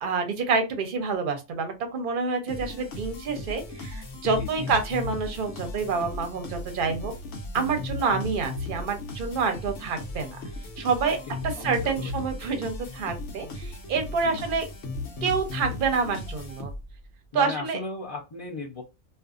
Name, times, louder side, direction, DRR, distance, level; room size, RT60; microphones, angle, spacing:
voice 1, 0.0-7.1 7.5-10.4 10.8-11.2 11.6-14.6 15.2-16.7 17.3-17.8, right 5 dB, 50° right, 6 dB, 0.7 m, -27 dB
sound 1, 2.5-17.0, left 2 dB, 70° left, 1.1 m, -36 dB
voice 2, 4.4-4.7 11.3-12.4 14.2-14.4 17.3-18.8, left 3 dB, 40° left, -4 dB, 0.5 m, -37 dB
2.5 x 2.4 x 2.4 m, 0.26 s
omnidirectional pair, 1.3 m